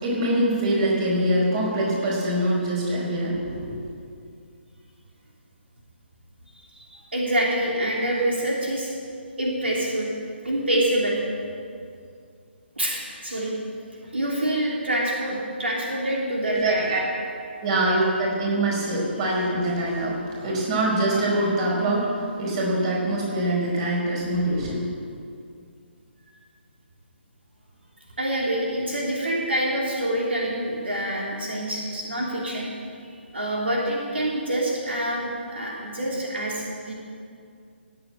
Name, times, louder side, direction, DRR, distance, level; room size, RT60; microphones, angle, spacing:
voice 1, 0.0-3.9 16.5-17.0 17.6-24.9, right 1 dB, 30° right, -3 dB, 5.0 m, -24 dB
voice 2, 6.5-8.9 9.4-10.1 10.4-11.2 12.8-13.5 14.1-16.9 28.2-32.7 33.3-36.9, right 1 dB, 70° right, -3 dB, 3.1 m, -26 dB
17.5 x 8.7 x 8.9 m, 2.3 s
figure-of-eight pair, 140°, 6 cm